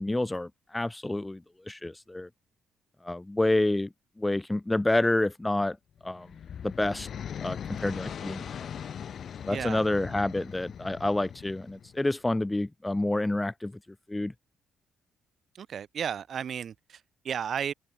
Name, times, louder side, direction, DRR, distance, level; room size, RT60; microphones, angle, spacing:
voice 1, 0.0-2.3 3.0-5.8 6.0-6.4 6.6-7.1 7.4-8.7 9.4-13.8 14.1-14.3, left 2 dB, 10° left, 0.3 m, -28 dB
sound 1, 6.0-12.0, left 8 dB, 60° left, 1.0 m, -40 dB
voice 2, 9.5-9.9 15.5-17.7, right 8 dB, 55° right, 0.7 m, -34 dB
open air
cardioid pair, 90°, 0 cm